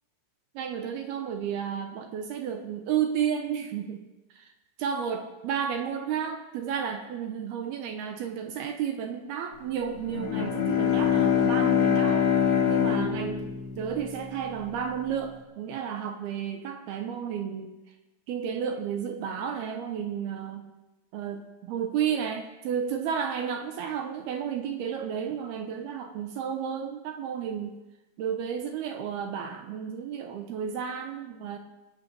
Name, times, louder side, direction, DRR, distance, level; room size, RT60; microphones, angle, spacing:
voice 1, 0.5-4.0 4.3-4.5 4.8-12.3 12.7-13.5 13.8-17.7 18.3-20.7 21.1-27.7 28.2-31.6, right 8 dB, 75° right, 5 dB, 2.8 m, -32 dB
Bowed string instrument, 10.0-14.7, left 8 dB, 90° left, 4.7 m, -25 dB
23.5 x 8.2 x 6.3 m, 1.0 s
omnidirectional pair, 5.0 m